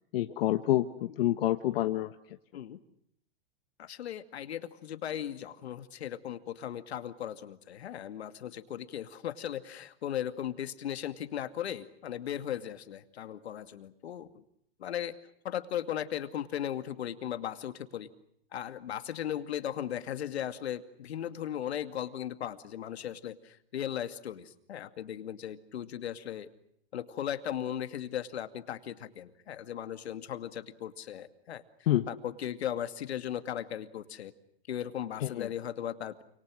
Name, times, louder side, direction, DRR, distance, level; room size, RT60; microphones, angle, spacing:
voice 1, 0.1-2.1 31.9-32.1 35.2-35.5, left 14 dB, 65° left, 7 dB, 1.5 m, -28 dB
voice 2, 3.8-14.4 14.8-15.2 15.4-18.1 18.5-26.5 26.9-31.6 32.1-34.3 34.7-36.2, left 10 dB, 80° left, 9 dB, 2.5 m, -37 dB
28.5 x 27.0 x 6.4 m, 0.74 s
hypercardioid pair, 140°, 31 cm